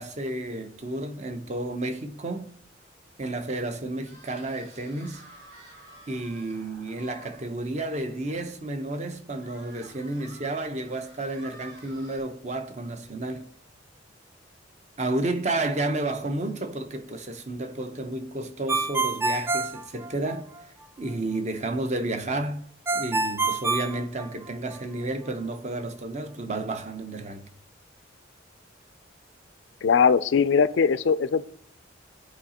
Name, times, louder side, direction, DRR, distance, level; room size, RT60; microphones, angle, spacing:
voice 1, 0.0-2.5 3.2-5.2 6.1-13.5 15.0-20.5 21.0-22.6 22.9-27.4, right 2 dB, 40° right, 0.8 m, -31 dB
sound 1, 4.0-7.4 7.9-8.0 8.3-8.4 9.4-12.2, right 1 dB, 75° right, 4.0 m, -51 dB
Ringtone, 18.7-20.6 22.9-24.7, right 3 dB, 15° right, 0.3 m, -27 dB
voice 2, 29.8-31.5, left 6 dB, 75° left, 0.4 m, -20 dB
14.5 x 4.8 x 2.9 m
head